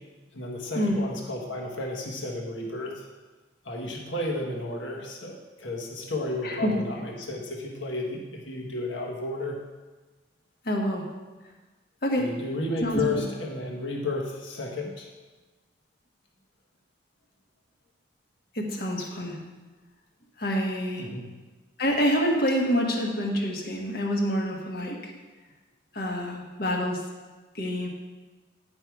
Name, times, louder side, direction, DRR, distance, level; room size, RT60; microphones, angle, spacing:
voice 1, 0.3-3.1 3.6-9.6 12.2-15.1 21.0-21.3, left 2 dB, 75° left, 0 dB, 1.4 m, -32 dB
voice 2, 10.6-11.0 12.0-12.3 12.8-13.1 18.5-19.4 20.4-21.1 21.8-25.1 25.9-27.1 27.5-27.9, equal, 50° left, 1 dB, 1.3 m, -27 dB
9.8 x 5.5 x 4.7 m, 1.3 s
head